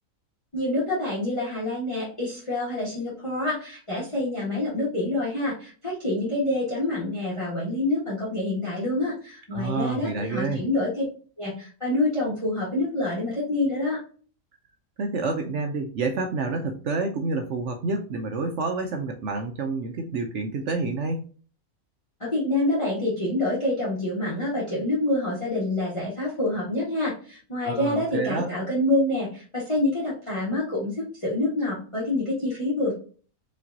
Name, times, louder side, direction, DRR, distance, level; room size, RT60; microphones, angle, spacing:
voice 1, 0.5-11.0 11.4-14.0 22.2-32.9, left 2 dB, 20° left, -8 dB, 1.5 m, -27 dB
voice 2, 9.5-10.6 15.0-21.3 27.6-28.5, right 3 dB, 60° right, 5 dB, 0.8 m, -28 dB
5.0 x 3.3 x 2.7 m, 0.40 s
omnidirectional pair, 1.6 m